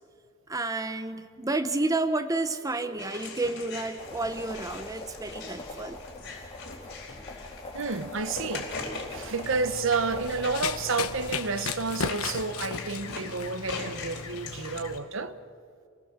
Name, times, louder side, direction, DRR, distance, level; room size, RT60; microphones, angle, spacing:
voice 1, 0.5-6.0, right 2 dB, 15° right, 0.8 m, -30 dB
voice 2, 2.8-3.3 7.7-8.7 9.1-15.4, right 4 dB, 65° right, 1.0 m, -30 dB
sound 1, 3.0-14.8, left 4 dB, 55° left, 4.2 m, -42 dB
sound 2, 4.0-11.4, left 2 dB, 25° left, 2.6 m, -43 dB
Run, 9.4-15.0, left 6 dB, 90° left, 1.1 m, -36 dB
28.0 x 18.5 x 7.4 m
head